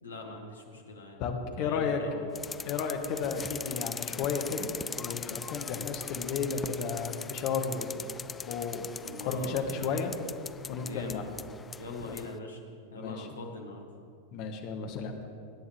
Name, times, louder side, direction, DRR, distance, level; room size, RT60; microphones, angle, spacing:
voice 1, 0.0-1.2 1.6-2.3 9.0-9.6 10.8-11.2 11.8-12.6 12.9-13.9, left 2 dB, 75° left, 2 dB, 1.7 m, -42 dB
voice 2, 1.2-2.0 2.7-4.7 5.0-8.1 8.5-8.9 9.2-10.1 10.7-11.2 12.1-12.2 13.0-13.3 14.3-15.2, left 5 dB, 45° left, 4 dB, 1.4 m, -33 dB
sound 1, 2.3-12.3, left 5 dB, 15° left, 0.3 m, -40 dB
21.5 x 9.7 x 3.4 m, 2.4 s
figure-of-eight pair, 90°, 0 cm